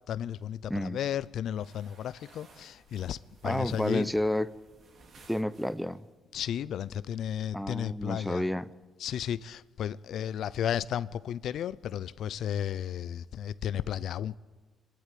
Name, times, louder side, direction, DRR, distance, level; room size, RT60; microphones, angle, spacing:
voice 1, 0.1-4.1 6.3-8.4 9.0-14.4, left 10 dB, 70° left, 0.5 m, -33 dB
sound 1, 1.5-6.2, right 4 dB, 55° right, 3.3 m, -58 dB
voice 2, 3.4-4.5 5.3-6.1 7.5-8.7, left 1 dB, ahead, 0.8 m, -30 dB
25.5 x 12.0 x 9.3 m
cardioid pair, 90°, 0 cm